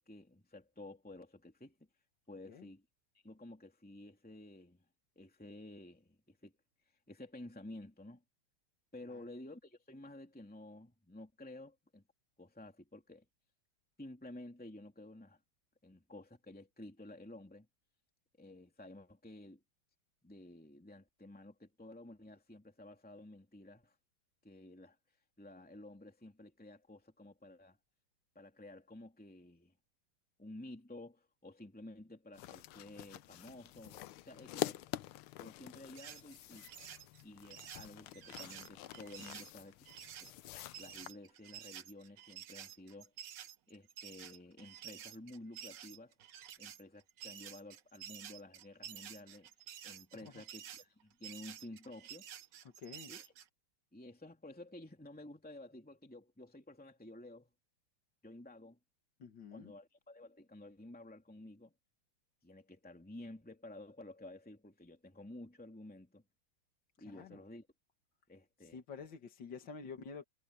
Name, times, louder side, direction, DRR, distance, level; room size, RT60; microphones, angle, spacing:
voice 1, 0.0-1.9 2.3-2.8 3.2-4.8 5.2-6.5 7.1-8.2 8.9-12.0 12.4-13.3 14.0-15.4 15.8-17.7 18.4-19.6 20.2-24.0 24.4-25.0 25.4-27.8 28.3-29.7 30.4-34.9 35.4-36.7 37.2-39.8 40.2-40.3 40.8-43.1 43.7-46.1 46.6-49.5 49.8-52.3 53.1-53.2 53.9-57.5 58.2-58.8 59.5-61.7 62.4-66.2 67.0-67.7 68.3-68.8, left 1 dB, 5° left, 2.6 m, -52 dB
sound 1, 32.3-41.1, left 15 dB, 80° left, 1.5 m, -46 dB
sound 2, 36.0-53.5, right 10 dB, 60° right, 1.5 m, -51 dB
voice 2, 50.1-50.4 52.6-53.1 59.2-59.7 67.0-67.4 68.6-70.2, left 5 dB, 60° left, 2.4 m, -49 dB
omnidirectional pair, 2.4 m